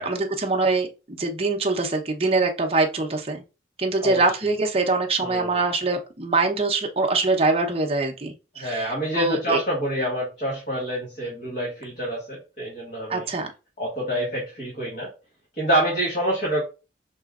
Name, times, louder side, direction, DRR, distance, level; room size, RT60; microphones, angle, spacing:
voice 1, 0.0-3.4 3.8-9.6 13.1-13.5, right 3 dB, 35° right, 2 dB, 0.8 m, -24 dB
voice 2, 5.2-5.5 8.6-13.3 13.8-15.1 15.6-16.6, right 1 dB, 45° left, -4 dB, 1.8 m, -27 dB
5.1 x 3.7 x 2.4 m, 0.31 s
head